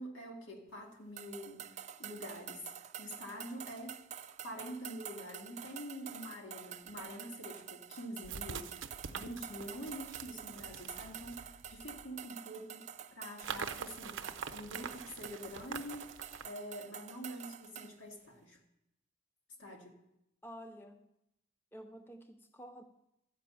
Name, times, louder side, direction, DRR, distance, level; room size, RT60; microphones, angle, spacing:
voice 1, 0.0-4.0 4.4-8.7 9.1-18.6 19.6-20.0, equal, 80° left, 2.2 m, -46 dB
sound 1, 1.2-18.0, right 9 dB, 35° right, 0.4 m, -48 dB
sound 2, 6.9-7.0 8.2-12.1 13.4-16.5, right 6 dB, 70° right, 0.6 m, -45 dB
voice 2, 20.4-21.1 21.7-22.8, equal, 10° left, 0.5 m, -50 dB
12.0 x 5.3 x 8.3 m
head